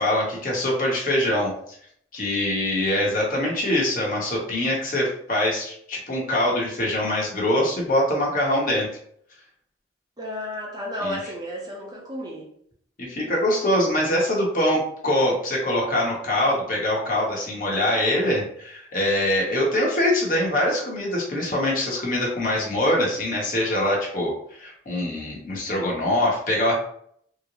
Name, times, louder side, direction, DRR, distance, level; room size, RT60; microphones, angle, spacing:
voice 1, 0.0-1.5 2.1-8.9 11.0-11.3 13.0-26.7, left 1 dB, 45° left, -3 dB, 1.0 m, -23 dB
voice 2, 10.2-12.5, equal, 20° right, -3 dB, 0.6 m, -32 dB
3.8 x 2.1 x 3.0 m, 0.65 s
head